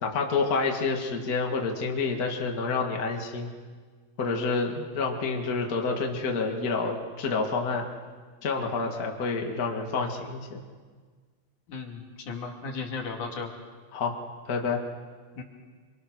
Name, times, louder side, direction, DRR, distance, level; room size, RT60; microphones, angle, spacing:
voice 1, 0.0-3.5 4.2-7.8 8.4-10.6 13.9-14.1 14.5-14.8, left 4 dB, 85° left, 1 dB, 0.8 m, -28 dB
voice 2, 11.7-13.5 15.4-15.5, left 4 dB, 45° left, 1 dB, 3.3 m, -35 dB
28.5 x 25.5 x 6.4 m, 1.5 s
omnidirectional pair, 5.9 m